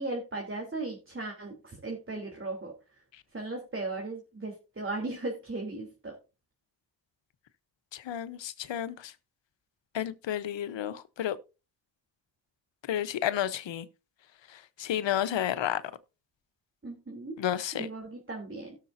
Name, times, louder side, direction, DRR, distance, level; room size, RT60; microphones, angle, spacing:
voice 1, 0.0-2.7 3.3-6.2 16.8-17.4 17.8-18.8, right 2 dB, 25° right, 3.5 m, -37 dB
voice 2, 7.9-9.1 9.9-11.4 12.9-13.9 14.5-15.8 17.4-17.9, left 10 dB, 75° left, 1.0 m, -31 dB
17.5 x 6.7 x 2.7 m
cardioid pair, 55°, 44 cm